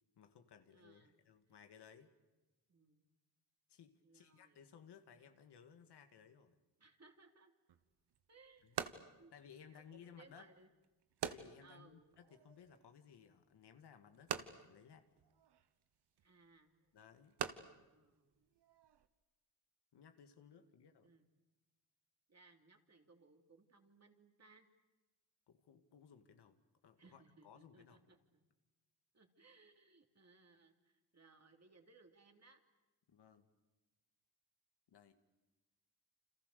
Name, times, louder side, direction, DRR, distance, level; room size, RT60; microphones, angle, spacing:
voice 1, 0.2-2.1 3.7-6.6 8.6-8.8 9.3-10.5 11.2-15.1 16.9-17.4 19.9-21.1 25.5-28.0 33.1-33.5 34.9-35.1, left 7 dB, 85° left, 7 dB, 2.1 m, -61 dB
voice 2, 0.7-1.2 2.7-3.1 4.0-4.7 6.8-7.5 8.3-9.3 9.7-10.7 11.6-12.1 16.2-16.8 17.7-18.4 20.6-20.7 21.0-21.2 22.3-24.7 27.0-28.4 29.1-32.6, right 3 dB, 40° right, 4 dB, 3.1 m, -66 dB
sound 1, 7.7-19.1, right 8 dB, 90° right, 1.3 m, -48 dB
29.0 x 26.5 x 6.8 m, 1.1 s
cardioid pair, 80°, 39 cm